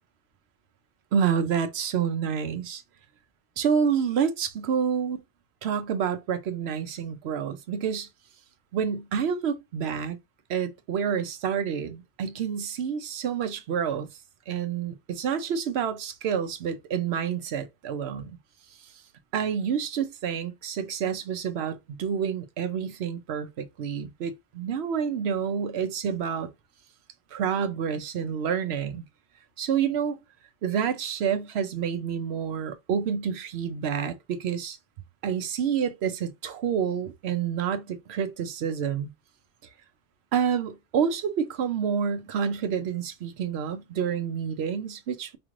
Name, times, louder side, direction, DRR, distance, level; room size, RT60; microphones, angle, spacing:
voice 1, 1.1-2.8 3.6-5.2 5.6-8.1 8.7-10.2 10.5-14.1 14.5-18.3 19.3-26.5 27.3-29.1 29.6-30.2 30.6-34.8 35.2-39.1 40.3-45.4, right 7 dB, 85° right, 0.9 m, -28 dB
5.1 x 2.4 x 3.1 m
omnidirectional pair, 1.1 m